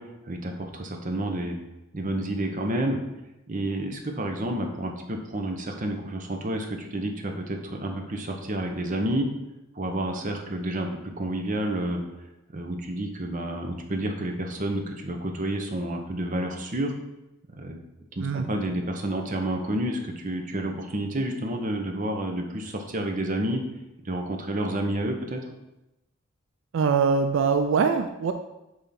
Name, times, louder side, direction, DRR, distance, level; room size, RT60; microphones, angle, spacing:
voice 1, 0.0-1.6 1.9-3.0 3.5-9.3 9.7-12.0 12.5-16.9 17.6-17.8 18.2-23.6 24.0-25.4, right 1 dB, 40° right, 4 dB, 0.7 m, -30 dB
voice 2, 26.7-28.3, right 5 dB, 65° right, 7 dB, 0.3 m, -23 dB
6.7 x 3.6 x 4.2 m, 0.93 s
head